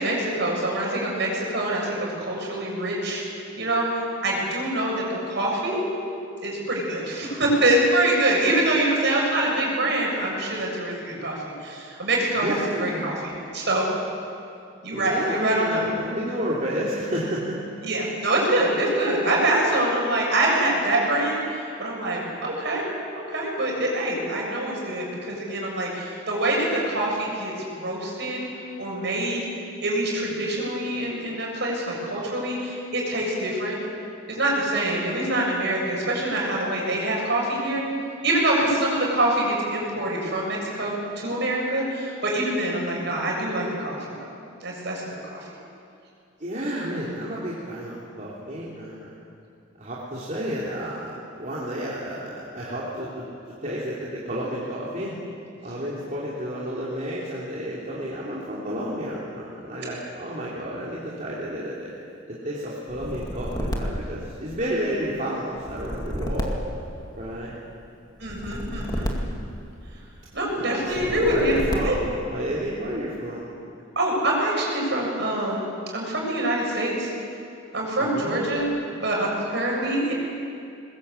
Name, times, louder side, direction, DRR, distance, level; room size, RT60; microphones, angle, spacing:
voice 1, 0.0-3.2 3.6-5.8 6.4-11.4 11.6-13.1 13.5-13.9 14.8-15.8 17.8-22.8 23.2-27.5 27.8-28.4 28.8-29.4 29.8-33.8 34.3-37.8 38.2-44.3 44.6-45.4 68.2-69.1 70.3-71.5 71.8-71.9 74.0-77.1 77.7-78.7 79.0-80.1, right 1 dB, 55° right, -2 dB, 7.2 m, -25 dB
voice 2, 12.3-13.1 14.9-17.8 46.4-49.2 49.8-53.2 53.6-55.2 55.6-61.9 62.3-66.6 67.1-67.5 70.5-73.5 78.0-78.4, equal, 40° right, -7 dB, 3.4 m, -31 dB
sound 1, 62.9-64.9 65.6-67.5 68.2-70.1 70.9-72.2, equal, 20° left, 2.3 m, -31 dB
22.0 x 21.0 x 8.4 m, 2.5 s
head